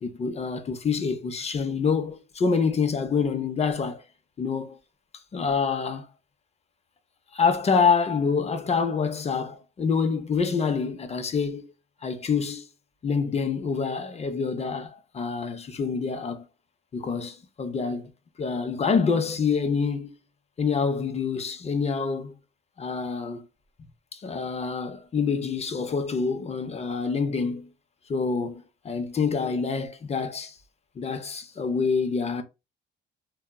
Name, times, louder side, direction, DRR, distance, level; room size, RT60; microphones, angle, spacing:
voice 1, 0.0-4.0 4.4-4.8 5.3-6.1 7.3-11.7 12.0-12.7 13.0-16.4 16.9-18.1 18.4-20.1 20.6-22.3 22.8-23.4 24.1-27.7 28.1-30.6 31.0-32.4, left 5 dB, 35° left, 0.5 m, -26 dB
3.4 x 2.1 x 2.2 m
cardioid pair, 90°, 20 cm